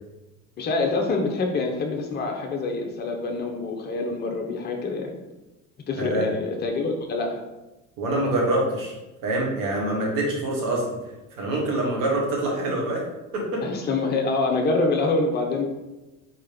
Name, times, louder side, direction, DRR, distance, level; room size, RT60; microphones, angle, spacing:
voice 1, 0.6-5.1 5.9-7.4 13.6-15.6, left 3 dB, 25° left, 2 dB, 0.7 m, -26 dB
voice 2, 8.0-9.0 9.2-10.9 11.4-13.1 13.3-13.6, right 1 dB, 50° right, -2 dB, 1.6 m, -25 dB
4.3 x 3.2 x 3.7 m, 1.0 s
figure-of-eight pair, 70°, 40 cm